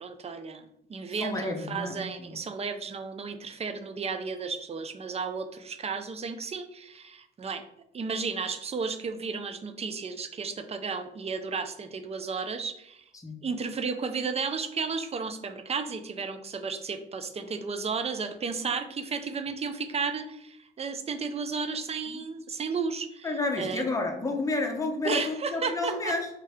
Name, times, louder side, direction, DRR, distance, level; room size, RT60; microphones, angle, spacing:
voice 1, 0.0-7.6 7.9-13.0 13.4-23.8 25.0-26.1, right 5 dB, 30° right, 8 dB, 0.5 m, -33 dB
voice 2, 1.1-2.4 13.1-13.4 18.5-18.7 22.1-22.2 23.2-26.3, left 2 dB, 15° left, 3 dB, 0.8 m, -31 dB
3.6 x 2.7 x 3.3 m, 0.77 s
cardioid pair, 90°, 20 cm